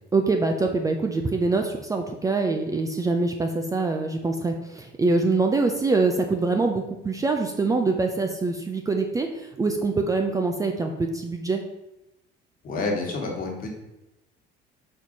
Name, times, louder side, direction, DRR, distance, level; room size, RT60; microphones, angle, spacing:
voice 1, 0.1-11.6, right 3 dB, 15° right, 4 dB, 0.4 m, -24 dB
voice 2, 12.6-13.7, left 3 dB, 45° left, 0 dB, 1.6 m, -28 dB
4.6 x 4.3 x 5.2 m, 0.92 s
cardioid pair, 130°, 20 cm